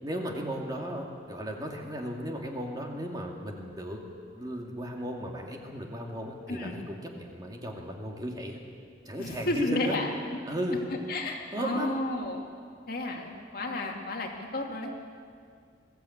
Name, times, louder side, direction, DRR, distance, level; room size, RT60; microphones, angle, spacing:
voice 1, 0.0-4.0 4.3-8.6 9.1-10.0 10.5-10.8 11.5-11.9 13.8-13.9, equal, 25° right, 0 dB, 2.4 m, -35 dB
voice 2, 9.2-10.4 10.9-12.4 12.9-14.9, left 1 dB, 55° left, 1 dB, 2.4 m, -32 dB
21.5 x 14.5 x 8.6 m, 2.2 s
head